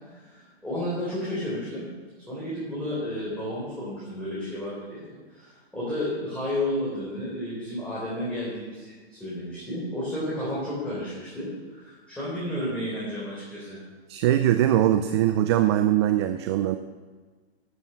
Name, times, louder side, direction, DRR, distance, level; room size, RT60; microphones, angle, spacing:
voice 1, 0.0-1.9 2.3-13.8, left 1 dB, 5° left, -9 dB, 3.8 m, -32 dB
voice 2, 14.1-16.8, right 12 dB, 25° right, 9 dB, 0.4 m, -21 dB
12.0 x 8.2 x 6.6 m, 1.4 s
hypercardioid pair, 130°, 33 cm